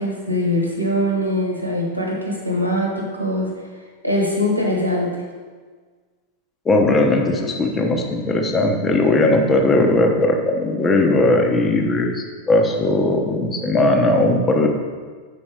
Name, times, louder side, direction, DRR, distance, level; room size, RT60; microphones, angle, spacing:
voice 1, 0.0-3.5 4.0-5.2, left 1 dB, 85° right, -1 dB, 1.3 m, -22 dB
voice 2, 6.6-14.7, left 2 dB, 20° left, 2 dB, 1.0 m, -18 dB
7.2 x 5.3 x 4.9 m, 1.5 s
figure-of-eight pair, 90°, 0 cm